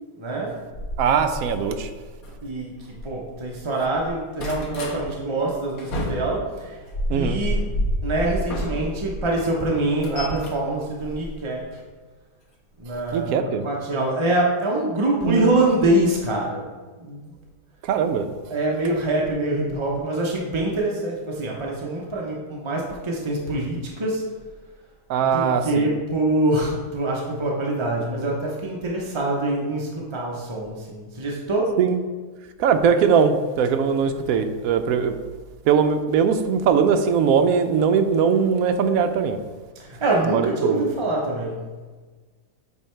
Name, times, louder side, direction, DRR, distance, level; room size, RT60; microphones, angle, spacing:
voice 1, 0.2-0.6 2.4-6.8 7.1-7.6 8.0-11.8 12.8-16.7 17.0-17.2 18.5-24.3 25.2-31.8 39.8-41.6, right 2 dB, 35° right, -2 dB, 0.5 m, -25 dB
sound 1, 0.7-3.5 3.8-5.0 5.4-9.2 9.6-11.8 12.9-13.1 13.5-13.6 13.8-13.9, equal, 60° left, 1.5 m, -30 dB
voice 2, 1.0-1.9 7.1-7.4 13.1-13.6 13.9-14.0 15.2-15.5 17.8-18.3 25.1-25.9 31.8-32.0 32.6-35.1 35.7-39.4 40.3-40.9, right 6 dB, 70° right, 8 dB, 0.9 m, -20 dB
8.3 x 3.4 x 4.4 m, 1.4 s
omnidirectional pair, 1.7 m